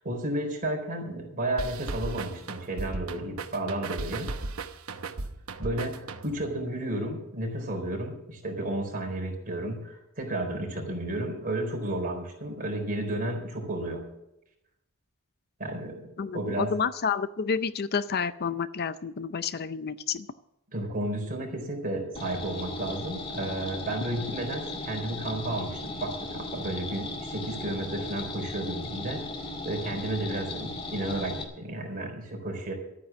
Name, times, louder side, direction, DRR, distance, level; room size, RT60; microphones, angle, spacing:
voice 1, 0.0-4.3 5.6-14.1 15.6-16.7 20.7-29.3 29.6-32.7, right 1 dB, 40° right, 1 dB, 4.2 m, -32 dB
sound 1, 1.6-6.5, right 3 dB, 70° right, 0.9 m, -36 dB
voice 2, 16.2-20.3, left 6 dB, 45° left, 14 dB, 0.5 m, -30 dB
sound 2, 22.2-31.4, left 2 dB, 25° left, 2.1 m, -37 dB
13.0 x 9.5 x 7.4 m, 0.85 s
head